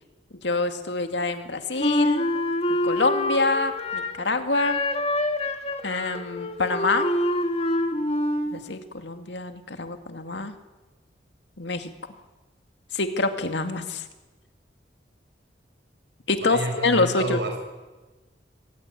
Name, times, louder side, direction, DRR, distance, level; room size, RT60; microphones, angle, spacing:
voice 1, 0.4-2.3 2.8-4.8 5.8-7.1 8.5-10.5 11.6-11.9 12.9-14.0 16.3-17.4, left 3 dB, 80° left, 7 dB, 2.2 m, -26 dB
Wind instrument woodwind instrument, 1.8-4.2 4.5-8.6, left 1 dB, 35° left, 2.1 m, -26 dB
voice 2, 16.4-17.6, right 1 dB, 70° right, 4 dB, 6.7 m, -30 dB
24.5 x 16.5 x 9.7 m, 1.2 s
head